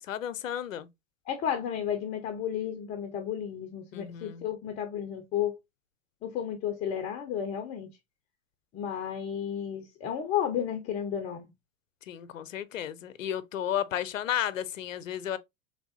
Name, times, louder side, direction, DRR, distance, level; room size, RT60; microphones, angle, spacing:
voice 1, 0.1-0.9 3.9-4.4 12.1-15.4, left 10 dB, 75° left, 0.5 m, -33 dB
voice 2, 1.3-5.6 6.2-7.9 8.7-11.5, left 9 dB, 20° left, 0.4 m, -32 dB
3.4 x 3.3 x 2.5 m
figure-of-eight pair, 90°, 39 cm